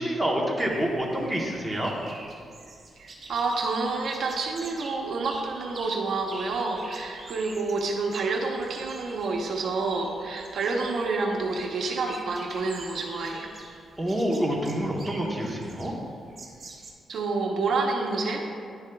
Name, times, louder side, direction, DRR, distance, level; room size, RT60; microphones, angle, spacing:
voice 1, 0.0-1.9 14.0-15.9, right 1 dB, 5° right, -2 dB, 1.0 m, -27 dB
sound 1, 0.6-16.9, right 2 dB, 35° right, 1.1 m, -46 dB
voice 2, 3.0-13.5 17.1-18.4, right 3 dB, 65° right, 1 dB, 0.8 m, -28 dB
10.5 x 7.0 x 2.3 m, 2.3 s
cardioid pair, 115°, 0 cm